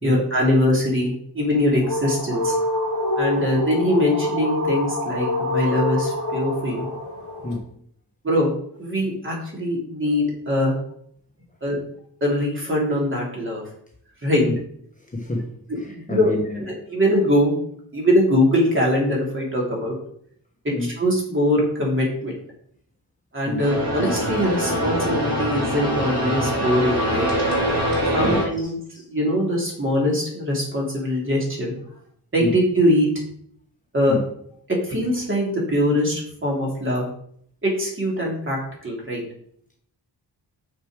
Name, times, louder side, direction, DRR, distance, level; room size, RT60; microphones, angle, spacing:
voice 1, 0.0-2.5 3.1-6.9 8.2-8.5 8.8-10.7 11.6-11.8 12.2-13.6 14.2-14.4 15.7-16.3 16.9-20.0 20.6-22.4 23.3-27.3 28.1-28.7 29.1-31.7 32.3-33.1 33.9-34.2 34.8-37.0 37.6-39.2, left 1 dB, 30° right, 3.1 m, -22 dB
sound 1, 1.4-7.6, left 2 dB, 45° left, 2.6 m, -26 dB
voice 2, 15.1-16.6 20.7-20.9 23.5-23.6 28.2-28.4 28.9-29.0 32.4-32.6 34.1-34.3, left 2 dB, 20° left, 1.2 m, -28 dB
sound 2, 23.6-28.5, equal, 60° right, 3.5 m, -23 dB
6.6 x 6.5 x 5.0 m
wide cardioid pair, 140°, 40 cm